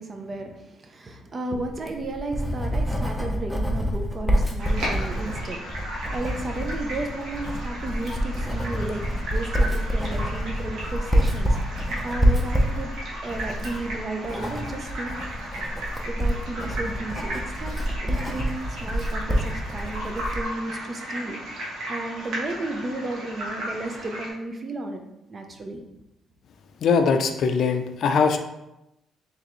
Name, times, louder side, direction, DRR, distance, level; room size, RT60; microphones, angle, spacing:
voice 1, 0.0-5.6 6.1-9.0 9.3-12.9 13.2-15.2 16.1-25.8, right 2 dB, 40° right, 4 dB, 0.6 m, -33 dB
Writing, 1.7-20.5, equal, ahead, 0.7 m, -27 dB
sound 1, 4.6-24.3, right 1 dB, 80° right, 1.2 m, -35 dB
voice 2, 26.8-28.4, left 5 dB, 65° left, 6 dB, 0.4 m, -21 dB
3.6 x 3.3 x 3.0 m, 0.89 s
cardioid pair, 90°, 0 cm